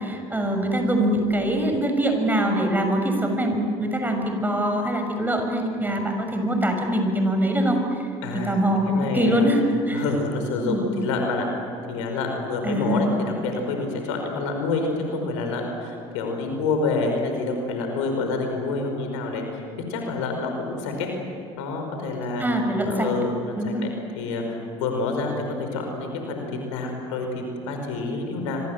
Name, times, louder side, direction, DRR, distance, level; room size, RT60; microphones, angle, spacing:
voice 1, 0.0-7.8 8.3-8.9 9.1-10.0 10.6-10.9 12.6-13.1 22.4-23.1 23.6-23.9, right 1 dB, 10° right, 4 dB, 6.6 m, -23 dB
voice 2, 8.2-8.6 8.9-9.5 9.9-11.5 11.9-21.1 21.6-22.4 22.9-23.7 24.2-25.3 25.6-28.6, left 3 dB, 75° left, 4 dB, 5.2 m, -28 dB
25.5 x 25.0 x 7.9 m, 2.3 s
hypercardioid pair, 65°, 16 cm